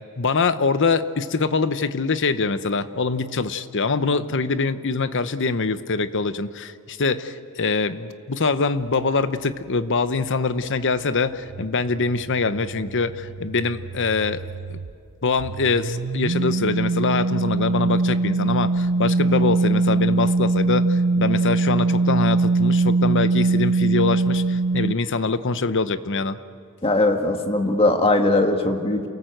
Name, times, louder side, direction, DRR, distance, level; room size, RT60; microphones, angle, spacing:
voice 1, 0.2-14.4 14.7-14.8 15.2-26.4, left 4 dB, 55° left, 12 dB, 0.9 m, -24 dB
sound 1, 11.5-14.9 15.4-24.9, right 3 dB, 65° right, 0.6 m, -22 dB
voice 2, 26.8-29.0, left 2 dB, 25° left, 4 dB, 1.7 m, -20 dB
28.5 x 18.5 x 7.9 m, 2.3 s
head